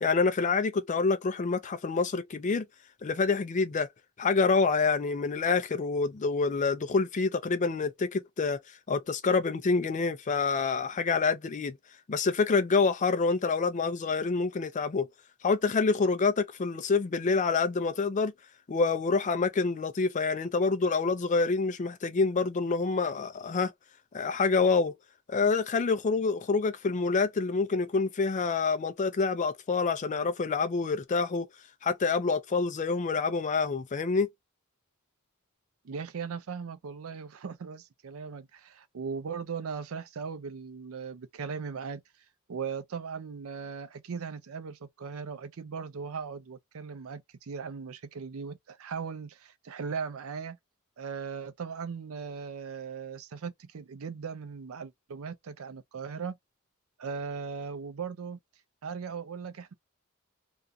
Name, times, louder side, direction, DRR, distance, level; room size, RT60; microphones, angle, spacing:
voice 1, 0.0-2.6 3.0-3.9 4.2-8.6 8.9-11.8 12.1-15.1 15.4-18.3 18.7-23.7 24.1-24.9 25.3-31.5 31.8-34.3, left 4 dB, 35° left, 0.4 m, -27 dB
voice 2, 35.8-42.0 42.5-50.6 51.0-56.4 57.0-58.4 58.8-59.7, right 6 dB, 70° right, 0.5 m, -38 dB
2.5 x 2.2 x 2.5 m
head